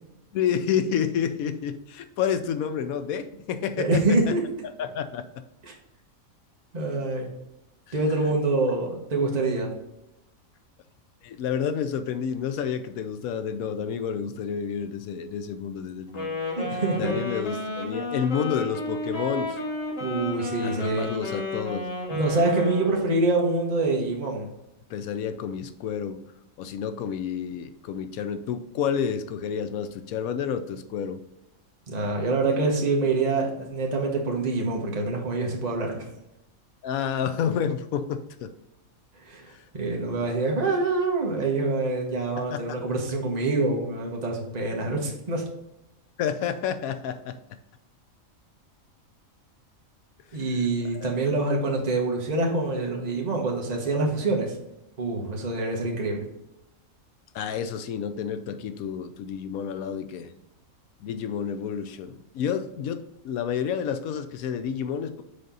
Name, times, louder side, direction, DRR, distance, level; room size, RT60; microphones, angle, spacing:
voice 1, 0.3-4.3 4.8-5.4 11.2-16.3 17.0-19.6 20.6-21.9 24.9-26.2 26.6-31.2 36.8-38.5 39.5-39.6 40.0-40.3 42.5-42.8 46.2-47.4 51.0-51.1 57.3-60.3 61.0-65.2, left 7 dB, 85° left, 10 dB, 1.1 m, -30 dB
voice 2, 3.8-4.4 5.6-5.7 6.7-7.3 7.9-9.7 16.6-17.1 20.0-21.1 22.1-24.5 31.9-36.1 39.2-45.4 50.3-54.5 55.0-56.2, right 3 dB, 30° right, 0 dB, 1.2 m, -26 dB
Wind instrument woodwind instrument, 16.1-23.3, left 2 dB, 65° left, 2.1 m, -32 dB
6.5 x 4.4 x 3.8 m, 0.90 s
omnidirectional pair, 1.5 m